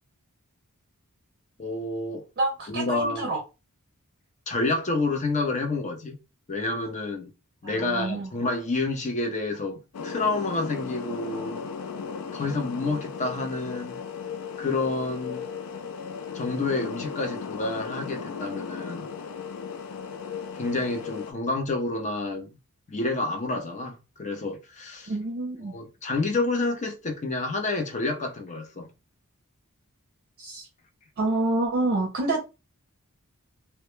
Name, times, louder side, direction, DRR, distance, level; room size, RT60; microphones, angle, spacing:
voice 1, 1.6-2.2 2.7-3.3 4.5-6.2 6.5-7.3 7.6-11.6 12.3-14.0 14.6-15.5 16.3-19.1 20.5-22.5 22.9-25.1 25.7-28.9, left 2 dB, 35° left, 0.5 m, -29 dB
voice 2, 2.4-3.4 7.8-8.3 25.1-25.7 30.4-30.6 31.2-32.4, right 2 dB, 45° right, 0.5 m, -27 dB
sound 1, 9.9-21.3, left 6 dB, 80° left, 0.4 m, -36 dB
2.1 x 2.1 x 3.0 m
head